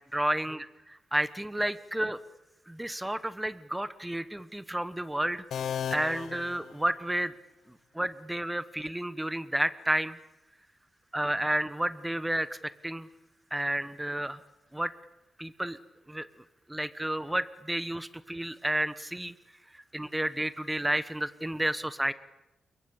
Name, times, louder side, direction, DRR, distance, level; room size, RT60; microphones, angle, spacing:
voice 1, 0.0-2.2 2.7-5.5 5.9-7.3 7.7-10.2 11.1-13.1 13.5-14.4 14.7-14.9 15.4-15.8 16.1-16.3 16.7-19.3 19.7-22.1, right 1 dB, 5° right, 14 dB, 1.1 m, -31 dB
sound 1, 5.5-7.4, left 8 dB, 80° left, 0.9 m, -36 dB
28.5 x 22.5 x 8.8 m, 1.0 s
wide cardioid pair, 130°, 0 cm